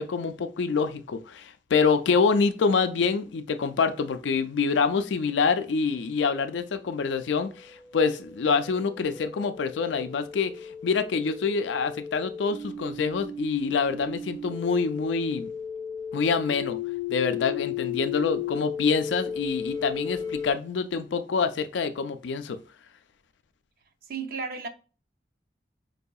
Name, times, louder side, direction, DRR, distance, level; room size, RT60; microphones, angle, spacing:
voice 1, 0.0-15.5 16.1-16.8 17.1-22.6, left 5 dB, 85° left, 0.4 m, -26 dB
sound 1, 7.3-20.5, left 7 dB, 20° left, 0.6 m, -35 dB
voice 2, 24.0-24.7, right 5 dB, 55° right, 0.5 m, -33 dB
4.7 x 2.7 x 2.3 m
head